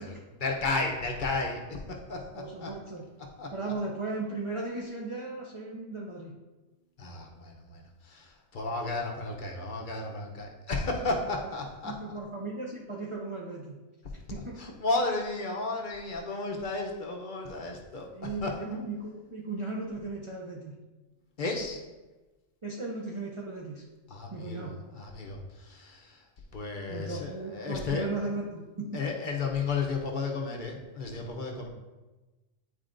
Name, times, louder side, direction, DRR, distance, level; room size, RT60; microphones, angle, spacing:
voice 1, 0.0-2.7 3.4-3.5 7.0-12.2 14.6-18.5 21.4-21.8 24.1-26.3 26.5-28.1 28.9-31.7, left 3 dB, 50° left, 1 dB, 0.8 m, -33 dB
voice 2, 2.3-3.0 3.5-6.3 11.8-13.8 14.3-14.8 18.1-20.8 22.6-23.8 24.3-24.7 26.9-29.0, right 3 dB, 35° right, -2 dB, 0.5 m, -36 dB
9.0 x 4.2 x 2.5 m, 1.2 s
omnidirectional pair, 1.3 m